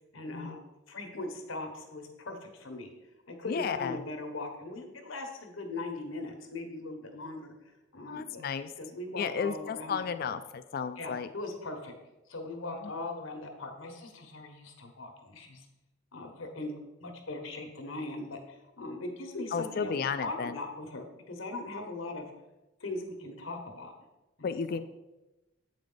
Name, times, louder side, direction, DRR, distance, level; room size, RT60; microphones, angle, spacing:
voice 1, 0.1-0.6 0.9-2.9 3.3-7.5 7.9-8.4 8.8-10.3 11.0-11.9 12.3-15.6 16.1-16.7 17.0-19.9 20.2-22.3 22.8-23.9 24.4-24.5, left 2 dB, 85° left, 4 dB, 1.2 m, -40 dB
voice 2, 3.5-4.0 8.1-8.7 9.1-11.3 12.7-12.9 19.5-20.6 24.4-24.8, left 6 dB, 50° left, 10 dB, 0.3 m, -33 dB
8.1 x 5.0 x 3.9 m, 1.0 s
head